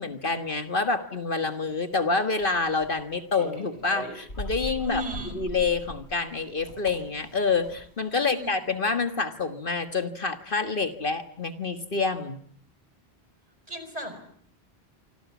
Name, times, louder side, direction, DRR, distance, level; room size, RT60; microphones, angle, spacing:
voice 1, 0.0-5.0 5.3-12.4, left 4 dB, 55° left, 9 dB, 1.7 m, -27 dB
sound 1, 2.4-3.0 3.3-8.0, equal, 90° left, 7.9 m, -39 dB
voice 2, 4.8-5.4 8.1-8.5 13.7-14.2, equal, 35° right, 8 dB, 5.6 m, -35 dB
27.5 x 26.0 x 7.2 m, 0.63 s
omnidirectional pair, 1.1 m